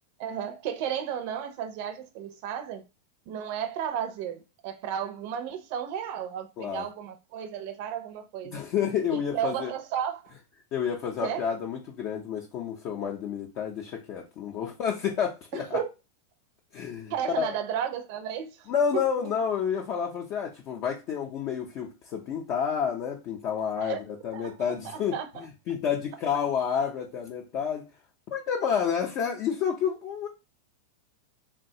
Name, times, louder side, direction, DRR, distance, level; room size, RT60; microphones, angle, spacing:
voice 1, 0.2-2.8 3.3-8.6 9.1-10.3 11.2-11.5 15.5-15.9 17.1-19.3 23.8-24.0 24.3-24.6 24.8-25.5, right 9 dB, 55° right, 0.4 m, -33 dB
voice 2, 8.5-9.7 10.7-15.8 16.7-17.5 18.7-25.1 25.7-27.9 28.3-30.3, left 7 dB, 50° left, 0.5 m, -29 dB
3.2 x 2.2 x 2.7 m
hypercardioid pair, 115°, 0 cm